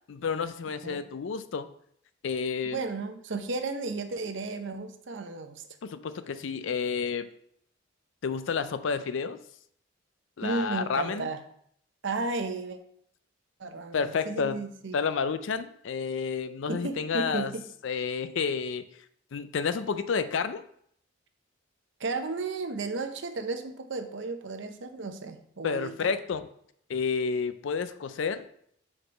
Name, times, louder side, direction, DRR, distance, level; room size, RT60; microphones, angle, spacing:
voice 1, 0.1-1.7 2.2-2.8 5.8-7.3 8.2-9.4 10.4-11.3 13.9-14.6 14.9-17.5 17.8-18.8 19.3-20.6 25.6-26.5 26.9-28.5, left 5 dB, 65° left, 12 dB, 0.4 m, -30 dB
voice 2, 2.6-5.7 10.4-11.4 12.0-12.8 13.6-15.0 16.7-17.6 22.0-26.1, right 3 dB, 60° right, 7 dB, 0.7 m, -34 dB
4.9 x 4.4 x 5.6 m, 0.68 s
head